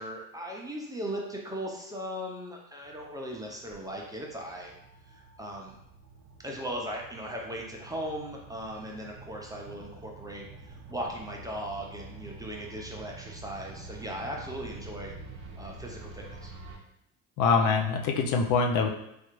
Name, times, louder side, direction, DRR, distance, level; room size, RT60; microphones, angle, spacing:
voice 1, 0.0-4.7 5.1-5.8 6.4-15.1 15.6-16.5, equal, 10° right, -1 dB, 0.5 m, -38 dB
sound 1, 2.8-16.8, right 3 dB, 50° right, 0.9 m, -47 dB
voice 2, 17.4-18.9, left 5 dB, 55° left, 3 dB, 0.5 m, -24 dB
3.2 x 2.4 x 3.0 m, 0.81 s
supercardioid pair, 90°, 37 cm